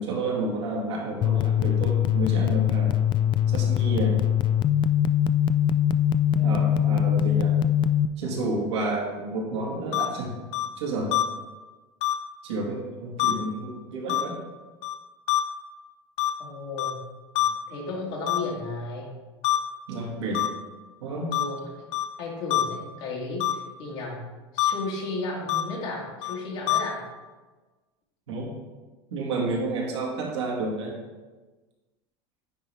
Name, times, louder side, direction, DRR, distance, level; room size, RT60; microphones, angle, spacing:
voice 1, 0.0-2.9 3.5-4.2 6.3-7.6 8.2-10.3 10.8-11.1 12.4-14.4 19.9-20.4 21.0-21.3 28.3-28.5 29.1-30.9, right 2 dB, 85° right, -3 dB, 1.9 m, -30 dB
sound 1, 1.2-8.1, left 10 dB, 35° left, 0.3 m, -22 dB
voice 2, 6.4-6.8 16.4-17.0 17.7-19.2 21.3-21.7 22.2-24.2 24.5-27.0, left 2 dB, 70° left, -3 dB, 2.0 m, -34 dB
sound 2, 9.9-10.1 10.5-10.7 11.1-11.2 12.0-12.1 13.2-13.3 14.1-14.2 14.8-14.9 15.3-15.4 16.2-16.3 16.8-16.9 17.4-17.5 18.3-18.4 19.4-19.6 20.3-20.5 21.3-21.4 21.9-22.0 22.5-22.6 23.4-23.5 24.6-24.7 25.5-25.6 26.2-26.3 26.7-26.8, left 14 dB, 50° left, 0.7 m, -24 dB
9.5 x 4.0 x 3.4 m, 1.3 s
supercardioid pair, 110°, 14 cm